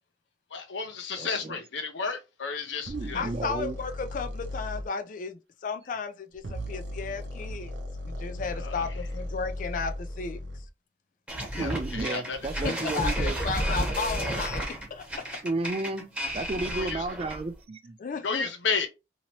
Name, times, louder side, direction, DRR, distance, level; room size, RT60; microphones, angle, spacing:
voice 1, 0.5-3.2 8.6-8.8 11.5-12.4 16.7-17.0 18.2-18.9, left 5 dB, 80° left, 0.8 m, -32 dB
voice 2, 1.2-1.6 2.9-3.8 11.5-13.4 15.4-18.0, right 3 dB, 30° right, 0.4 m, -33 dB
sound 1, 2.8-4.9 6.3-10.7, left 1 dB, 75° right, 0.6 m, -37 dB
voice 3, 3.1-7.7 8.0-10.4 12.6-15.4 16.6-16.7 18.0-18.5, left 5 dB, 45° left, 0.4 m, -34 dB
sound 2, 11.3-17.5, equal, 10° right, 1.0 m, -31 dB
2.9 x 2.8 x 2.9 m
head